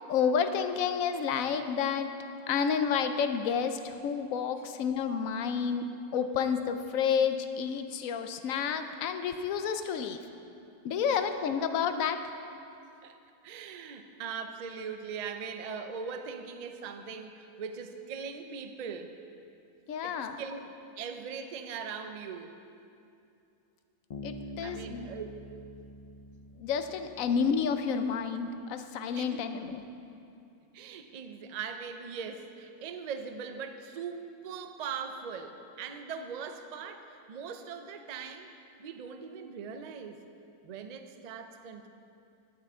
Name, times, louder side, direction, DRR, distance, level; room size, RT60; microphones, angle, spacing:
voice 1, 0.1-2.2 2.5-5.8 6.1-10.2 10.8-12.2 19.9-20.4 24.2-25.1 26.6-29.8, left 6 dB, 70° left, 9 dB, 1.0 m, -30 dB
voice 2, 13.4-19.2 20.0-22.6 24.6-25.5 29.1-29.5 30.7-38.5 38.8-40.3 40.6-41.9, right 6 dB, 70° right, 7 dB, 0.4 m, -40 dB
Bass guitar, 24.1-27.7, left 1 dB, 90° left, 0.3 m, -45 dB
12.5 x 9.6 x 3.5 m, 2.6 s
omnidirectional pair, 1.5 m